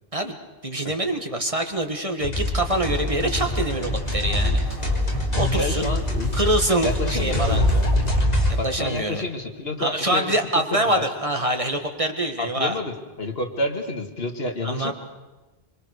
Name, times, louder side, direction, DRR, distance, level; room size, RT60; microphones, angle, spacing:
voice 1, 0.6-4.6 5.3-5.9 6.3-7.7 8.5-9.2 9.8-12.8 14.6-14.9, right 1 dB, 30° right, 4 dB, 1.9 m, -25 dB
sound 1, 2.2-8.5, left 1 dB, 40° left, 3.3 m, -24 dB
sound 2, 2.6-8.2, equal, 55° right, 5.7 m, -39 dB
voice 2, 5.5-6.3 6.8-7.9 8.6-11.0 12.4-14.9, left 2 dB, 70° left, 4 dB, 2.3 m, -29 dB
25.0 x 24.0 x 6.7 m, 1.1 s
omnidirectional pair, 1.1 m